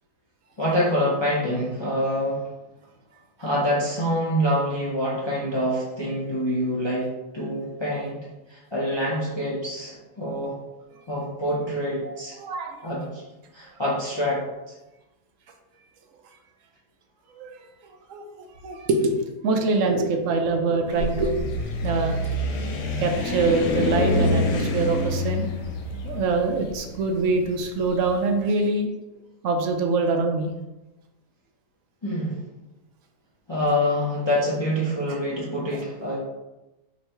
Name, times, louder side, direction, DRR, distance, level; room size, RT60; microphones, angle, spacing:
voice 1, 0.6-2.5 3.4-8.2 8.5-10.6 11.1-12.4 12.8-13.2 13.5-14.4 32.0-32.4 33.5-36.2, equal, 40° left, -6 dB, 0.4 m, -26 dB
voice 2, 12.0-12.9 17.4-17.5 18.1-21.4 21.8-22.2 23.0-25.5 26.0-28.9 29.4-30.5 35.1-35.2, right 3 dB, 70° right, 4 dB, 0.8 m, -24 dB
sound 1, 20.9-28.0, left 2 dB, 80° left, 1.2 m, -26 dB
3.0 x 2.7 x 4.4 m, 1.0 s
omnidirectional pair, 1.6 m